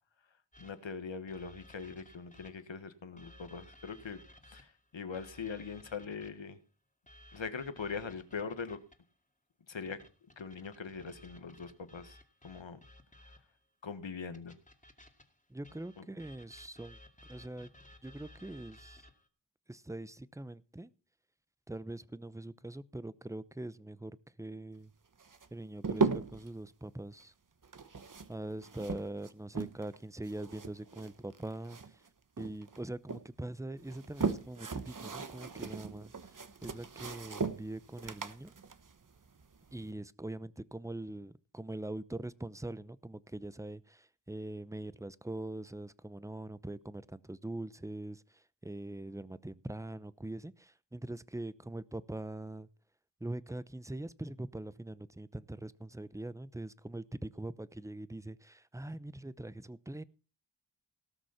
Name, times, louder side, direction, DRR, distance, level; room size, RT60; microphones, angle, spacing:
sound 1, 0.5-2.8 3.2-6.5 7.1-9.1 9.9-13.6 14.3-19.3, left 1 dB, 15° left, 2.3 m, -58 dB
voice 1, 0.6-4.2 4.5-6.6 7.3-8.8 9.7-10.0 10.4-12.2 12.4-12.8 13.8-14.5 16.0-16.1, left 5 dB, 75° left, 11 dB, 1.5 m, -42 dB
voice 2, 15.5-17.0 17.3-17.7 18.0-19.0 19.7-20.9 21.7-24.9 25.5-27.3 28.3-32.0 32.4-36.1 36.6-38.5 39.7-52.7 53.2-60.0, right 1 dB, 5° right, 17 dB, 0.7 m, -43 dB
sound 2, 25.2-26.5 27.6-30.0 30.2-32.1 32.4-33.2 33.8-39.8, right 4 dB, 45° right, 1.1 m, -37 dB
18.0 x 6.2 x 5.7 m, 0.36 s
wide cardioid pair, 50°, 46 cm